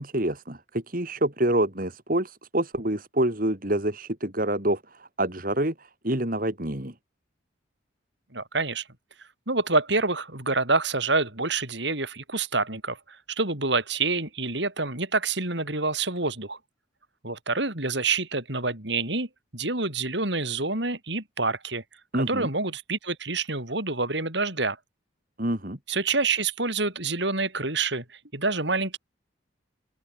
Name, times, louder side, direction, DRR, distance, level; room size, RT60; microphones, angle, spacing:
voice 1, 0.0-6.9 22.1-22.5 25.4-25.8, right 1 dB, 45° right, 2.9 m, -27 dB
voice 2, 8.3-8.9 9.5-16.6 17.2-19.3 19.5-21.8 22.1-24.8 25.9-29.0, right 3 dB, 65° right, 6.2 m, -27 dB
open air
head